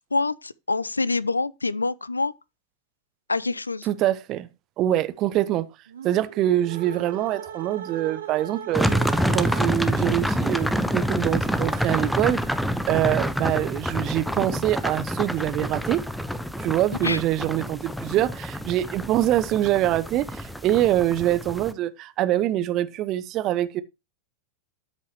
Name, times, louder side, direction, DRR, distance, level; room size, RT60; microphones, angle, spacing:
voice 1, 0.1-2.3 3.3-3.9 17.0-17.2, left 3 dB, 80° left, 0.4 m, -26 dB
voice 2, 3.8-4.5 4.8-5.7 6.0-8.9 9.3-12.4 12.9-16.0 16.6-23.8, right 13 dB, 35° right, 0.7 m, -24 dB
sound 1, 5.9-10.0, right 9 dB, 65° right, 1.6 m, -38 dB
sound 2, 8.7-21.7, equal, ahead, 0.7 m, -27 dB
13.0 x 5.5 x 3.1 m
figure-of-eight pair, 90°, 0 cm